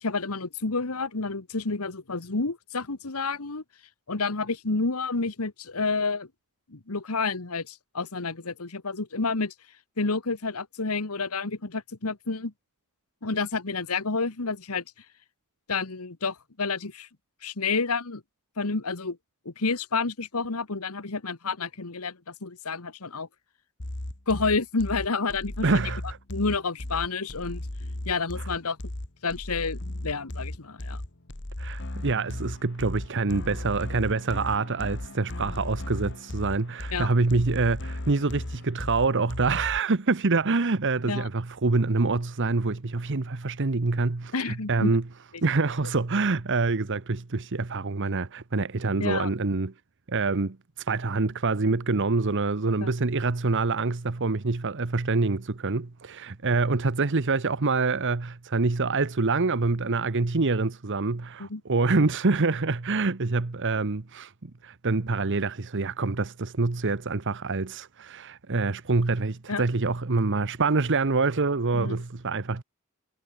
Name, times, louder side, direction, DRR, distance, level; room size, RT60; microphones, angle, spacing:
voice 1, 0.0-3.6 4.1-6.3 6.7-9.5 10.0-12.5 13.2-14.8 15.7-17.1 17.4-18.2 18.6-19.2 19.4-23.3 24.3-25.8 26.3-27.7 28.0-28.8 29.2-31.0 36.9-37.1 41.1-41.3 44.3-45.0 49.0-49.3 52.8-52.9 61.4-61.6 69.5-69.6 71.7-72.0, left 4 dB, 80° left, 1.5 m, -29 dB
sound 1, 23.8-39.8, left 1 dB, 55° left, 2.0 m, -36 dB
voice 2, 25.6-26.2 31.6-45.0 45.4-49.7 50.1-72.6, right 3 dB, 55° right, 1.0 m, -26 dB
head